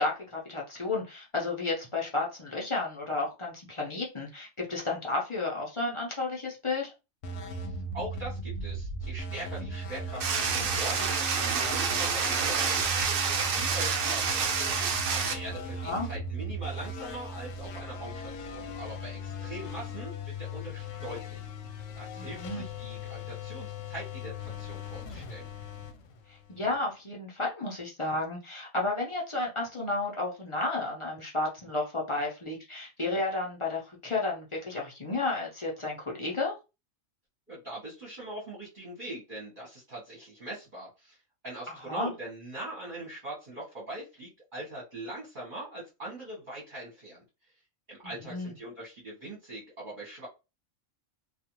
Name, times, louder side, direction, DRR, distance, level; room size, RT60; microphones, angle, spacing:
voice 1, 0.0-6.9 15.8-16.1 22.2-22.6 26.3-36.5 41.7-42.1 48.0-48.5, left 2 dB, 35° left, -2 dB, 0.5 m, -32 dB
sound 1, 7.2-26.8, equal, 80° left, 0.9 m, -38 dB
voice 2, 7.5-14.8 15.1-21.4 21.9-25.5 37.5-41.2 41.4-47.2 47.9-50.3, right 1 dB, 45° right, -6 dB, 1.0 m, -42 dB
sound 2, 10.2-15.3, right 6 dB, 60° right, 0.6 m, -28 dB
2.4 x 2.3 x 2.9 m, 0.28 s
omnidirectional pair, 1.3 m